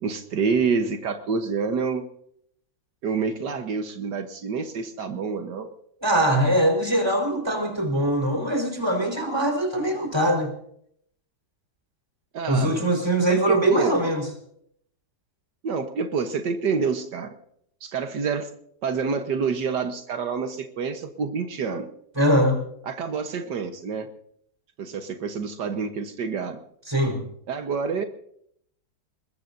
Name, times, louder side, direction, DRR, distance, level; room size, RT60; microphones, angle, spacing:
voice 1, 0.0-2.1 3.0-5.7 12.3-12.9 13.3-14.0 15.6-17.3 17.8-18.5 18.8-21.9 22.9-24.1 24.8-26.6 27.5-28.0, right 5 dB, 80° right, 7 dB, 1.8 m, -27 dB
voice 2, 6.0-10.5 12.5-14.2 22.2-22.6 26.9-27.2, right 1 dB, 15° right, 1 dB, 4.3 m, -22 dB
21.5 x 21.5 x 2.7 m, 0.68 s
omnidirectional pair, 1.8 m